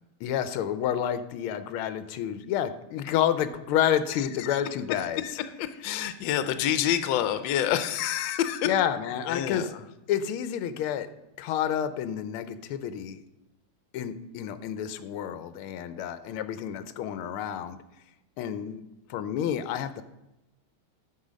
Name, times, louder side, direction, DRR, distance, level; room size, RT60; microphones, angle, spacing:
voice 1, 0.2-5.2 8.6-9.7 10.1-11.1 11.4-13.2 13.9-17.8 18.4-18.8 19.1-20.0, left 10 dB, 90° left, 12 dB, 1.5 m, -29 dB
voice 2, 4.1-4.6 5.2-8.7 9.3-9.8, left 11 dB, 75° left, 11 dB, 1.3 m, -28 dB
9.6 x 6.8 x 5.0 m, 0.94 s
omnidirectional pair, 2.3 m